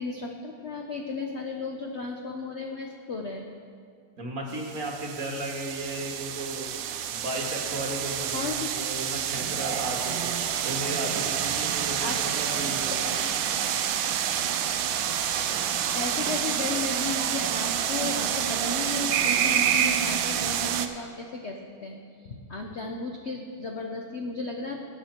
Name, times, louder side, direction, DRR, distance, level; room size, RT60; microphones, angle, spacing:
voice 1, 0.0-3.5 8.3-8.7 12.0-12.2 13.0-13.3 15.6-24.8, left 3 dB, 70° left, 2 dB, 0.6 m, -35 dB
voice 2, 4.2-6.8 7.1-10.3 10.6-13.0, right 1 dB, 40° right, 0 dB, 1.8 m, -35 dB
sound 1, 4.5-20.9, right 9 dB, 70° right, 1.3 m, -28 dB
sound 2, 7.9-17.3, left 1 dB, 45° left, 3.3 m, -49 dB
19.5 x 8.1 x 4.4 m, 2.3 s
omnidirectional pair, 2.4 m